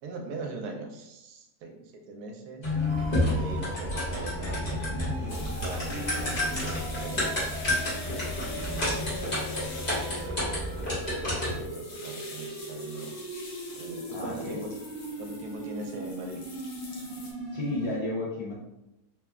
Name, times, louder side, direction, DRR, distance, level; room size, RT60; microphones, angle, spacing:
voice 1, 0.0-2.7 3.3-7.2 7.9-9.4 11.2-13.1 13.8-14.7 15.2-16.4, right 3 dB, 80° right, 2 dB, 1.1 m, -41 dB
sound 1, 2.6-11.7, left 1 dB, 35° left, 0.9 m, -30 dB
sound 2, 2.9-18.0, right 1 dB, 50° right, 1.1 m, -41 dB
sound 3, 5.3-17.3, left 3 dB, 75° left, 1.1 m, -45 dB
voice 2, 14.1-14.6 17.5-18.5, left 2 dB, 60° left, -5 dB, 0.7 m, -32 dB
3.1 x 2.2 x 2.3 m, 0.90 s
omnidirectional pair, 1.7 m